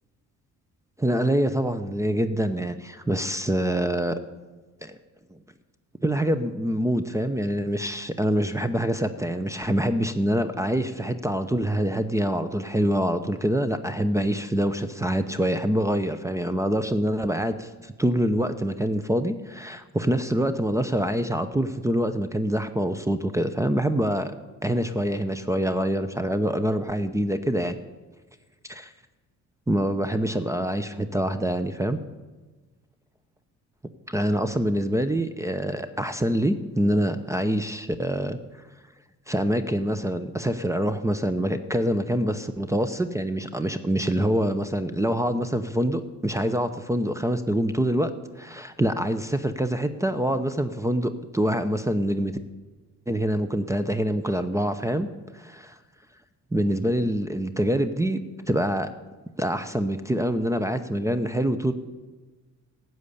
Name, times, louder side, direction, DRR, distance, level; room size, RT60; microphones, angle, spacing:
voice 1, 1.0-4.2 4.8-5.0 6.0-24.3 24.6-27.8 28.7-28.9 29.7-32.0 34.1-38.4 39.3-52.3 53.1-55.1 55.3-55.7 56.5-58.9 59.4-61.7, equal, 10° right, 11 dB, 0.7 m, -25 dB
13.0 x 7.9 x 8.4 m, 1.3 s
cardioid pair, 90°, 30 cm